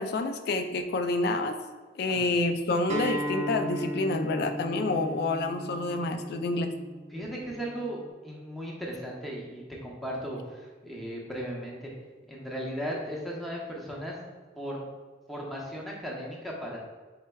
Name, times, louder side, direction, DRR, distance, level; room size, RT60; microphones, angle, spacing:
voice 1, 0.0-1.6 2.0-6.7, left 2 dB, 55° left, 7 dB, 0.3 m, -28 dB
Acoustic guitar, 2.9-8.1, equal, 40° right, 0.5 m, -36 dB
voice 2, 7.1-11.9 12.3-14.2 14.6-14.9 15.3-16.8, equal, ahead, -4 dB, 0.7 m, -36 dB
4.5 x 4.3 x 2.2 m, 1.3 s
head